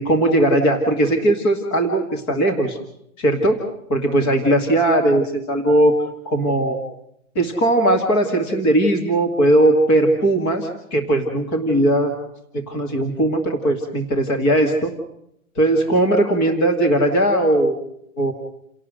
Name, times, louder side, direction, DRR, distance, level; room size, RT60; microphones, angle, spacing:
voice 1, 0.0-2.8 3.2-3.6 3.9-5.9 6.3-6.8 7.4-12.1 12.5-14.9 15.6-17.8 18.2-18.3, right 1 dB, 20° left, 3 dB, 1.9 m, -18 dB
29.5 x 18.0 x 6.4 m, 0.77 s
hypercardioid pair, 175°, 42 cm